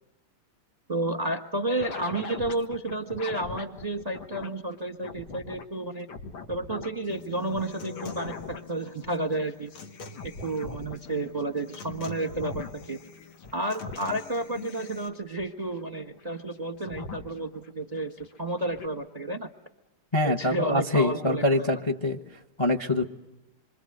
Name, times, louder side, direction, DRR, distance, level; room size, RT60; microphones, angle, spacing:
voice 1, 0.9-6.1 6.5-9.7 10.4-13.0 13.5-19.5 20.2-21.7, right 2 dB, 25° right, 5 dB, 1.0 m, -31 dB
sound 1, 1.8-4.5 4.7-5.6 5.9-7.6 8.0-17.7 18.0-18.9, left 4 dB, 65° left, 2.4 m, -41 dB
Human voice / Acoustic guitar, 7.1-15.1, left 5 dB, 80° left, 2.5 m, -45 dB
voice 2, 20.1-22.2 22.6-23.0, left 2 dB, 20° left, 5 dB, 0.9 m, -24 dB
27.5 x 25.0 x 7.9 m, 1.0 s
omnidirectional pair, 2.3 m